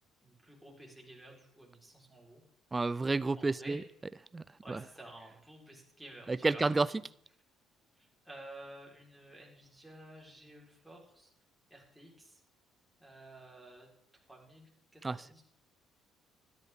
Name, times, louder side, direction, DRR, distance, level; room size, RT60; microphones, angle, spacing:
voice 1, 0.2-2.4 3.3-3.8 4.6-7.0 8.0-11.3 11.7-12.4 13.0-13.9 14.3-15.4, right 1 dB, ahead, 4.1 m, -52 dB
voice 2, 2.7-3.8 4.3-4.4 4.7-4.8 6.3-6.9 15.0-15.4, right 3 dB, 20° right, 0.4 m, -30 dB
12.5 x 11.0 x 3.6 m
supercardioid pair, 80°, 0 cm